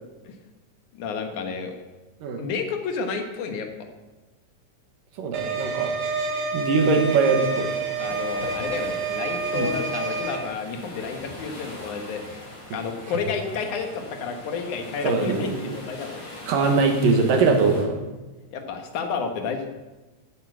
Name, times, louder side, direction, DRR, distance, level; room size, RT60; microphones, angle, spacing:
voice 1, 0.9-1.7 2.4-3.7 8.0-12.5 12.7-16.3 18.5-19.7, left 5 dB, 70° left, 5 dB, 2.8 m, -31 dB
voice 2, 5.2-5.9 6.5-7.7 9.5-9.7 12.7-12.8 15.0-15.7 16.5-18.0, right 4 dB, 85° right, 4 dB, 3.3 m, -22 dB
sound 1, 5.3-10.4, right 4 dB, 55° right, 1.9 m, -28 dB
sound 2, 6.8-17.8, left 1 dB, 35° left, 3.9 m, -41 dB
12.0 x 8.6 x 8.0 m, 1.1 s
omnidirectional pair, 3.8 m